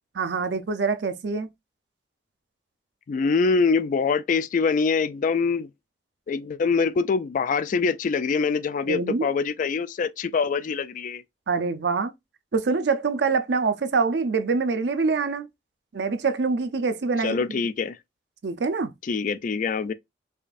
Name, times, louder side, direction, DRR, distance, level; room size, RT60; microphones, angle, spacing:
voice 1, 0.2-1.5 8.9-9.3 11.5-12.1 12.5-15.5 15.9-17.4 18.4-18.9, right 4 dB, 65° right, 0.5 m, -25 dB
voice 2, 3.1-5.7 6.3-11.2 17.2-18.0 19.0-19.9, left 5 dB, 45° left, 0.3 m, -24 dB
5.0 x 2.5 x 2.4 m
head